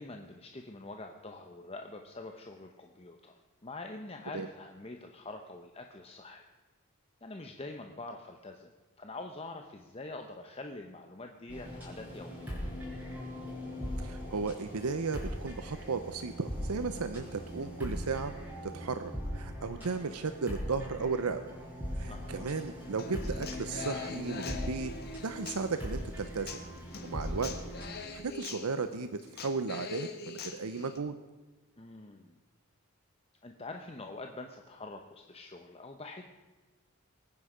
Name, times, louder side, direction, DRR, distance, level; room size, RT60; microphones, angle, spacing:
voice 1, 0.0-3.3 3.6-6.4 7.2-12.7 19.7-19.9 22.1-22.6 31.8-32.4 33.4-36.2, left 2 dB, 25° left, 4 dB, 0.8 m, -45 dB
sound 1, 11.5-27.9, equal, 10° right, 5.0 m, -40 dB
voice 2, 14.0-18.3 18.6-21.4 22.0-24.9 25.2-26.6 27.0-27.5 28.1-31.1, right 4 dB, 85° right, 10 dB, 0.7 m, -35 dB
Human voice / Acoustic guitar, 23.0-31.0, left 4 dB, 45° left, 1.5 m, -43 dB
23.0 x 9.8 x 5.0 m, 1.2 s
head